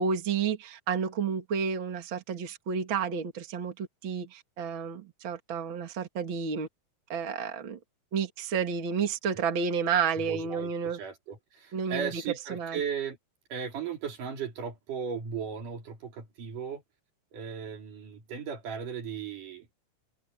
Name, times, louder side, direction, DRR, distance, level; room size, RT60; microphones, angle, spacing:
voice 1, 0.0-6.7 7.1-7.8 8.1-11.0 11.7-12.2 12.5-12.8, right 6 dB, 40° right, 2.7 m, -31 dB
voice 2, 10.2-13.2 13.5-16.8 17.3-19.7, right 7 dB, 75° right, 4.5 m, -36 dB
omnidirectional pair, 3.8 m